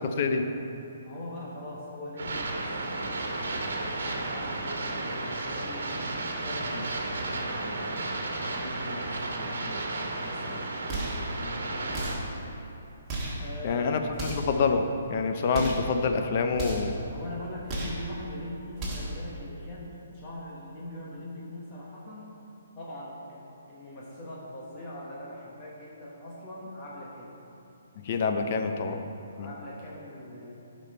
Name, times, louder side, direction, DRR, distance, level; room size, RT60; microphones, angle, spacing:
voice 1, 1.0-7.9 8.4-12.0 13.4-13.9 14.2-14.3 17.1-22.3 22.7-27.3 29.4-30.5, left 1 dB, 20° left, -5 dB, 1.2 m, -42 dB
sound 1, 2.2-12.2, right 2 dB, 85° right, 1.4 m, -33 dB
sound 2, 10.9-11.3 11.9-12.3 13.1-13.4 14.1-14.6 15.5-15.9 16.6-17.0 17.7-18.1 18.8-19.2, right 2 dB, 15° right, 1.5 m, -34 dB
voice 2, 13.6-14.8 15.1-16.9 28.0-29.0 29.4-29.5, left 5 dB, 35° left, 6 dB, 0.6 m, -26 dB
10.5 x 5.3 x 4.3 m, 2.9 s
hypercardioid pair, 165°, 0 cm